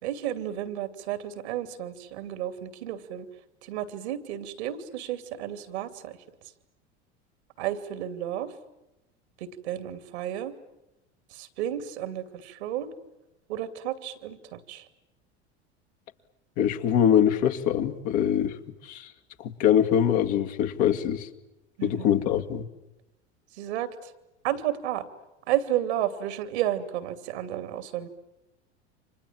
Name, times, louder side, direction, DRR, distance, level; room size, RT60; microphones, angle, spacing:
voice 1, 0.0-3.3 3.7-6.2 7.6-8.5 9.4-10.5 11.3-12.9 13.5-14.8 21.8-22.1 23.6-23.9 24.4-25.0 25.5-28.1, right 12 dB, 75° right, 11 dB, 2.7 m, -32 dB
voice 2, 16.6-18.6 18.8-19.1 19.4-21.3 21.8-22.7, left 9 dB, 60° left, 5 dB, 2.2 m, -23 dB
30.0 x 26.0 x 7.5 m, 0.96 s
hypercardioid pair, 80°, 34 cm